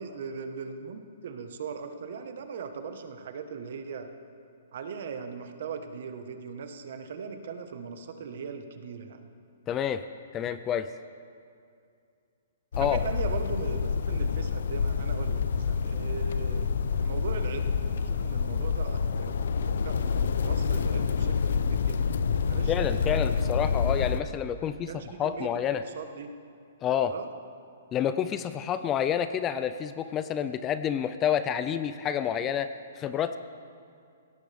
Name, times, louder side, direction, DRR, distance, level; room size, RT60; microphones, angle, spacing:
voice 1, 0.0-4.1 4.7-9.3 12.8-16.7 17.0-19.4 19.6-22.0 22.4-23.7 24.7-26.3 27.1-27.3, right 5 dB, 55° right, 7 dB, 1.2 m, -39 dB
voice 2, 9.7-10.0 10.3-10.9 12.8-13.0 22.7-24.9 25.2-25.8 26.8-27.1 27.9-32.7 33.0-33.4, left 9 dB, 15° left, 11 dB, 0.3 m, -28 dB
sound 1, 12.7-24.2, left 6 dB, 65° left, 0.6 m, -27 dB
19.5 x 17.0 x 3.5 m, 2.4 s
hypercardioid pair, 170°, 0 cm